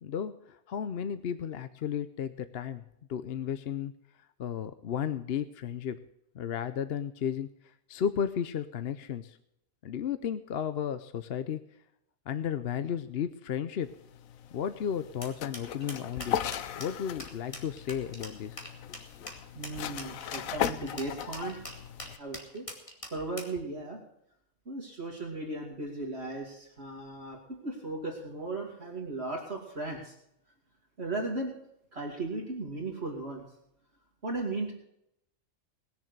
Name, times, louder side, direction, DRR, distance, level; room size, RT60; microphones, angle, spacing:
voice 1, 0.0-2.8 3.1-3.9 4.4-6.0 6.3-9.4 9.8-11.6 12.3-14.0 14.5-16.4 16.8-18.6 18.9-19.3, left 8 dB, 55° left, 12 dB, 0.8 m, -34 dB
sound 1, 13.9-22.2, left 10 dB, 85° left, 1.1 m, -38 dB
sound 2, 15.2-23.6, left 1 dB, 25° left, 2.4 m, -43 dB
voice 2, 19.5-21.6 22.2-22.7 23.1-24.0 24.7-30.1 31.0-31.5 31.9-33.4 34.2-34.7, right 2 dB, 50° right, -1 dB, 2.6 m, -36 dB
20.0 x 7.1 x 6.6 m, 0.77 s
omnidirectional pair, 1.4 m